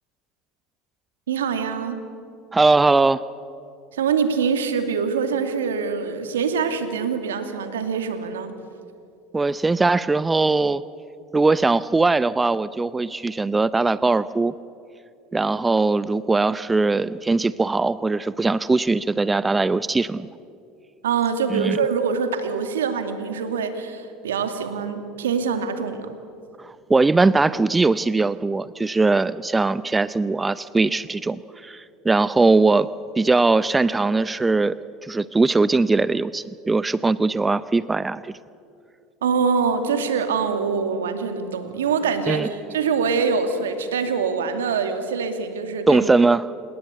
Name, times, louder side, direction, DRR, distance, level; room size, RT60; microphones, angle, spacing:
voice 1, 1.3-2.0 3.9-8.5 21.0-26.1 39.2-46.1, right 5 dB, 80° right, 7 dB, 2.3 m, -24 dB
voice 2, 2.5-3.2 9.3-10.8 11.3-14.5 15.3-20.3 21.5-21.8 26.6-32.9 33.2-34.7 35.0-38.3 42.3-42.5 45.9-46.4, right 3 dB, 15° right, 17 dB, 0.6 m, -20 dB
27.0 x 19.5 x 8.2 m, 2.5 s
hypercardioid pair, 75°, 0 cm